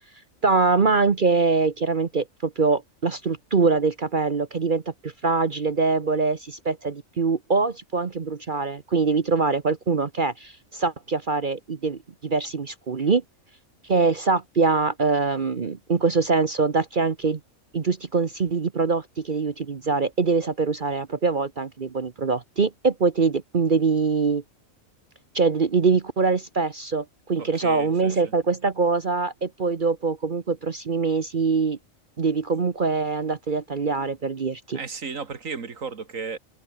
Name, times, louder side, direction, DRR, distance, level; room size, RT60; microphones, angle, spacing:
voice 1, 0.4-13.2 13.8-17.4 17.7-24.4 25.3-31.8 32.2-34.8, right 4 dB, 40° right, 1.1 m, -23 dB
voice 2, 27.4-28.3 34.7-36.4, right 5 dB, 75° right, 2.4 m, -34 dB
omnidirectional pair, 1.4 m